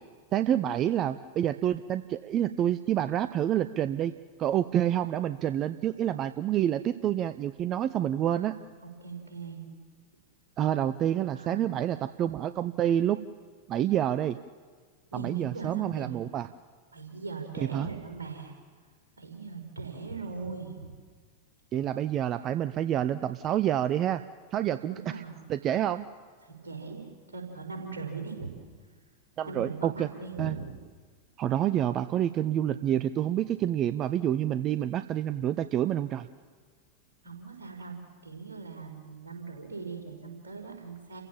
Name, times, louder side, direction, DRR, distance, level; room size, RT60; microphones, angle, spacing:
voice 1, 0.3-4.1 4.4-8.5 10.6-13.2 13.7-14.4 15.1-16.5 17.6-17.9 21.7-24.2 24.5-25.0 25.5-26.0 29.4-30.1 30.4-30.6 31.4-36.3, right 11 dB, 30° right, 13 dB, 0.6 m, -28 dB
voice 2, 8.2-8.5 8.8-9.6 11.3-11.7 15.1-16.1 16.9-18.5 19.2-20.8 24.9-25.5 26.4-28.5 29.4-30.7 37.2-41.2, right 4 dB, 70° right, 2 dB, 5.0 m, -40 dB
29.0 x 16.0 x 7.3 m, 1.5 s
figure-of-eight pair, 90°, 0 cm